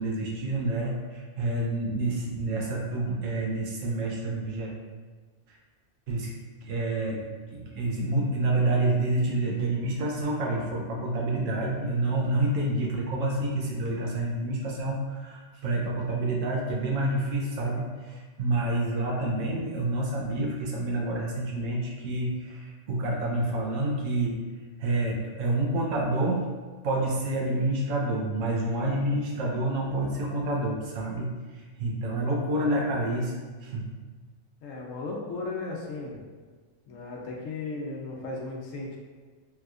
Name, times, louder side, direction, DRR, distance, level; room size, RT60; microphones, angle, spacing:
voice 1, 0.0-4.7 5.5-5.6 6.1-6.3 6.6-7.2 7.5-24.4 24.8-26.4 26.8-33.3 33.6-33.8, right 2 dB, 85° right, -3 dB, 1.1 m, -28 dB
voice 2, 34.6-36.2 36.9-39.0, left 3 dB, 85° left, -2 dB, 1.1 m, -35 dB
3.4 x 2.9 x 2.4 m, 1.4 s
omnidirectional pair, 1.3 m